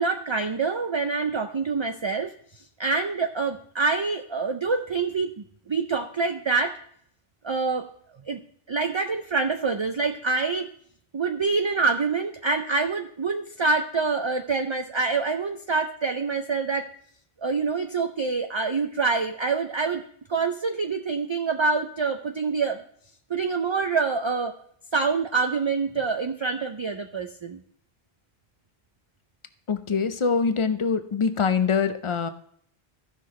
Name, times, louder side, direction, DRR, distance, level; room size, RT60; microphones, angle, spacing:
voice 1, 0.0-2.3 2.8-6.8 7.4-7.9 8.3-8.4 8.7-10.7 11.1-16.9 17.4-20.0 20.3-22.8 23.3-24.5 24.9-27.6, right 4 dB, 45° right, 6 dB, 0.4 m, -26 dB
voice 2, 29.7-32.3, left 5 dB, 40° left, 10 dB, 0.4 m, -24 dB
15.0 x 5.9 x 3.1 m, 0.66 s
omnidirectional pair, 1.1 m